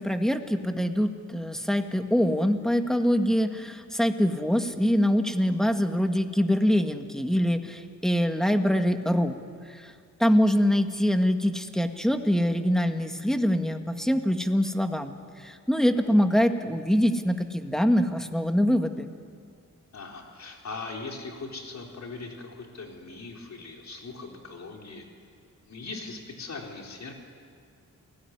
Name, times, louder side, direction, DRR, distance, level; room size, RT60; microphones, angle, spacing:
voice 1, 0.0-9.4 9.7-9.9 10.2-15.1 15.4-19.1, equal, ahead, 6 dB, 1.8 m, -24 dB
voice 2, 19.9-25.0 25.7-27.1, left 3 dB, 60° left, 1 dB, 4.3 m, -40 dB
29.0 x 18.5 x 9.7 m, 2.3 s
cardioid pair, 90°, 31 cm